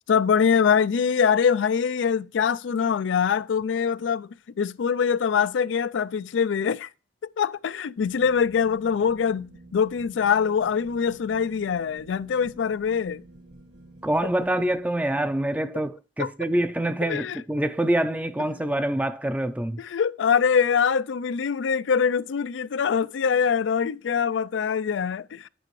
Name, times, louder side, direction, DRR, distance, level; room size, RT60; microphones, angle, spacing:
voice 1, 0.1-4.3 4.6-6.9 7.4-13.2 16.2-16.3 17.0-17.4 19.8-25.5, left 6 dB, 80° left, 0.4 m, -23 dB
sound 1, 8.0-14.8, right 2 dB, 65° right, 1.7 m, -49 dB
voice 2, 14.0-19.8, right 1 dB, 10° right, 0.4 m, -25 dB
9.1 x 6.1 x 3.1 m
head